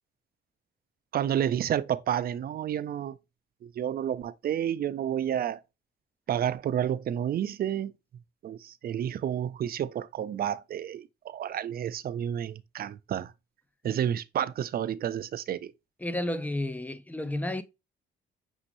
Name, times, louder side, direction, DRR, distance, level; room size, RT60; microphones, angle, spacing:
voice 1, 1.1-3.2 3.6-5.6 6.3-7.9 8.4-13.3 13.8-15.7, right 10 dB, 50° right, 0.4 m, -30 dB
voice 2, 16.0-17.6, left 1 dB, 10° left, 0.4 m, -32 dB
6.1 x 2.9 x 2.5 m
cardioid pair, 90°, 20 cm